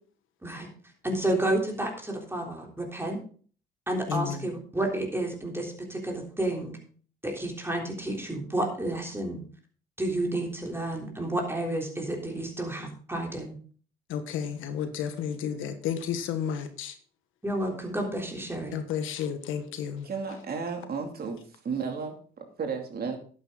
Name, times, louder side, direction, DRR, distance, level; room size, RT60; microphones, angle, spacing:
voice 1, 1.0-3.2 3.9-6.8 7.2-9.4 10.0-13.5 17.4-18.8, right 1 dB, 10° right, 1 dB, 3.5 m, -30 dB
voice 2, 4.1-4.5 14.1-16.9 18.7-20.1, left 8 dB, 90° left, 9 dB, 1.4 m, -32 dB
voice 3, 20.0-21.4 21.6-22.1 22.6-23.2, right 5 dB, 50° right, 4 dB, 2.7 m, -32 dB
11.0 x 9.3 x 3.9 m, 0.43 s
cardioid pair, 90°, 20 cm